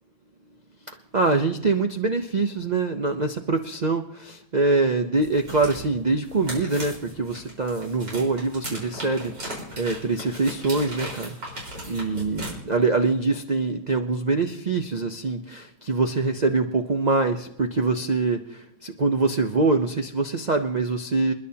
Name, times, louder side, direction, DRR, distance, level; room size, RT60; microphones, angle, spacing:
voice 1, 1.1-11.4 11.9-21.3, right 3 dB, 70° right, 5 dB, 0.4 m, -24 dB
sound 1, 5.2-12.5, equal, 85° right, 5.1 m, -37 dB
28.0 x 10.5 x 2.8 m, 0.77 s
omnidirectional pair, 1.8 m